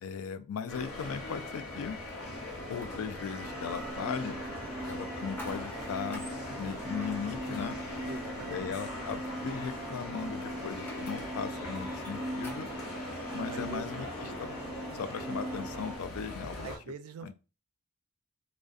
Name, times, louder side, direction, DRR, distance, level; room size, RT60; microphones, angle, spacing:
voice 1, 0.0-2.0 2.7-4.4 4.9-6.2 6.6-7.8 8.5-12.7 13.3-14.1 14.4-14.5 14.9-16.7 17.2-17.3, left 6 dB, 70° left, 0.3 m, -38 dB
sound 1, 0.7-16.8, left 1 dB, 90° left, 0.7 m, -41 dB
sound 2, 1.7-14.0, left 1 dB, 10° left, 0.6 m, -53 dB
sound 3, 3.4-16.0, right 1 dB, 35° right, 0.8 m, -40 dB
voice 2, 8.1-8.8 13.0-13.9 16.6-17.3, right 5 dB, 85° right, 0.3 m, -46 dB
2.4 x 2.1 x 2.3 m
head